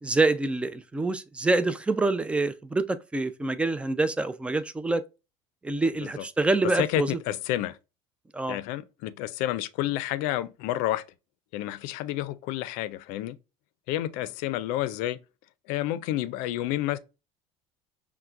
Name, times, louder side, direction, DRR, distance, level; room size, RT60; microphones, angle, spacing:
voice 1, 0.0-5.0 5.6-7.1 8.3-8.6, right 2 dB, 10° right, 0.4 m, -26 dB
voice 2, 6.7-7.8 8.5-11.0 11.5-13.4 13.9-15.2 15.7-17.0, left 14 dB, 75° left, 0.5 m, -30 dB
5.6 x 2.2 x 2.4 m
supercardioid pair, 105°, 14 cm